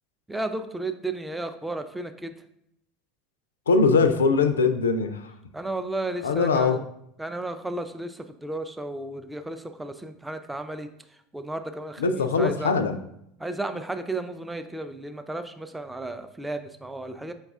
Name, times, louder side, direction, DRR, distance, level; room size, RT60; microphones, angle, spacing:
voice 1, 0.3-2.3 5.5-6.8 7.2-10.9 11.3-12.7 13.4-17.3, right 2 dB, 5° right, 7 dB, 0.4 m, -33 dB
voice 2, 3.7-5.3 6.2-6.8 12.0-13.0, left 4 dB, 70° left, 10 dB, 0.3 m, -22 dB
5.3 x 2.3 x 3.5 m, 0.77 s
figure-of-eight pair, 75°, 0 cm